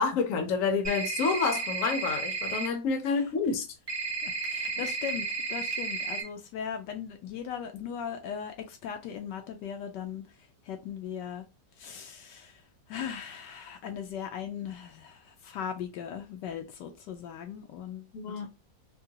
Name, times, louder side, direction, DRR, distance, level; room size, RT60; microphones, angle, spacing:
voice 1, 0.0-3.7 18.1-18.5, left 5 dB, 55° left, 1.0 m, -28 dB
sound 1, 0.8-2.7 3.9-6.2, right 4 dB, 30° right, 0.4 m, -33 dB
voice 2, 4.2-10.2 10.6-11.4 11.8-12.6 12.9-18.1, left 8 dB, 80° left, 1.2 m, -38 dB
3.7 x 2.3 x 2.7 m
omnidirectional pair, 2.0 m